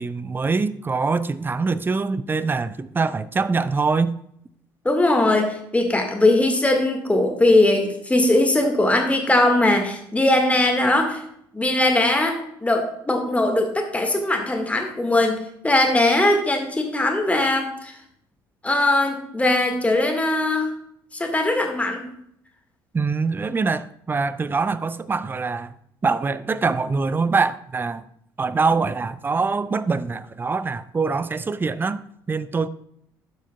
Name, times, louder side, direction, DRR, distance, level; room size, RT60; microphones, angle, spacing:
voice 1, 0.0-4.2 22.9-25.7 26.0-28.0 28.4-32.0 32.3-32.7, right 4 dB, 20° right, 0.4 m, -24 dB
voice 2, 4.8-11.2 11.5-18.0 18.6-20.7 21.1-22.1, left 2 dB, 10° left, 1.7 m, -20 dB
12.0 x 7.2 x 2.3 m
figure-of-eight pair, 55°, 11 cm